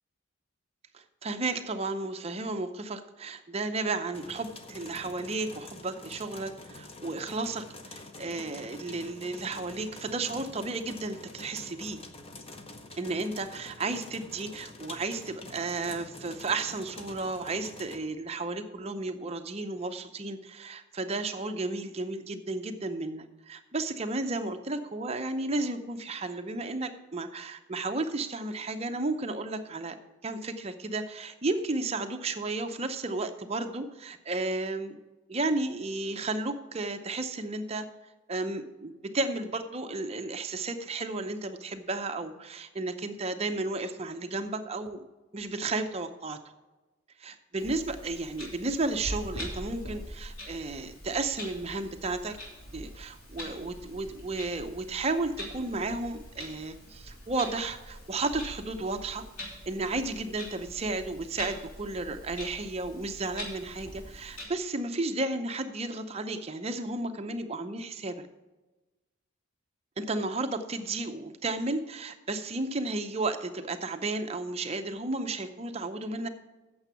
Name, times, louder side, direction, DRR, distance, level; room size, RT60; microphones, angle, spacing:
voice 1, 0.9-12.0 13.0-29.9 30.2-35.0 35.3-37.8 38.3-45.0 45.3-46.4 47.2-52.4 52.7-59.2 59.7-68.2 70.0-76.3, right 2 dB, 30° right, 7 dB, 0.6 m, -33 dB
sound 1, 4.1-18.0, left 2 dB, 25° left, 0.8 m, -47 dB
Clock, 47.6-64.4, equal, 85° left, 3.2 m, -43 dB
8.7 x 6.9 x 6.9 m, 1.1 s
head